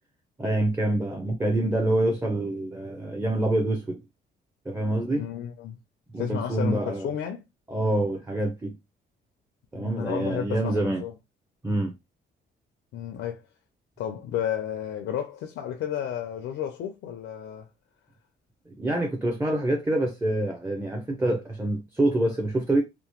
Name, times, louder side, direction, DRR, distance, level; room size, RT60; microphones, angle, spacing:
voice 1, 0.4-4.0 4.7-5.2 6.1-7.1 7.7-8.7 9.7-11.0 11.6-11.9 18.7-22.8, right 1 dB, 10° right, 0.6 m, -26 dB
voice 2, 5.1-5.8 6.2-7.4 9.7-11.1 12.9-13.5 14.0-17.7, left 9 dB, 80° left, 0.5 m, -32 dB
2.9 x 2.0 x 2.9 m
cardioid pair, 90°, 20 cm